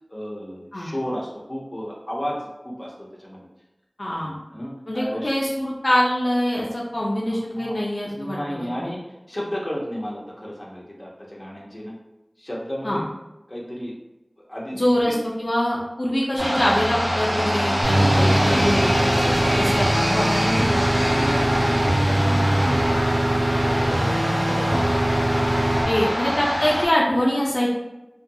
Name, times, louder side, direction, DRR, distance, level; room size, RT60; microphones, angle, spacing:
voice 1, 0.1-2.9 3.2-3.5 4.2-5.4 7.3-9.0 9.3-11.9 12.4-13.1 13.5-13.9 14.5-15.1 18.2-19.0 19.5-19.8 20.7-23.2 23.5-24.9 25.6-26.4, equal, 30° left, -4 dB, 0.7 m, -33 dB
voice 2, 4.0-4.3 4.9-8.9 12.8-13.0 14.7-21.3 24.1-24.3 25.9-27.7, equal, 70° left, -4 dB, 0.4 m, -24 dB
sound 1, 16.4-26.9, equal, 25° right, 1.2 m, -24 dB
sound 2, 17.8-25.8, right 1 dB, 80° right, 0.4 m, -22 dB
2.5 x 2.3 x 2.6 m, 0.97 s
wide cardioid pair, 45°, 0 cm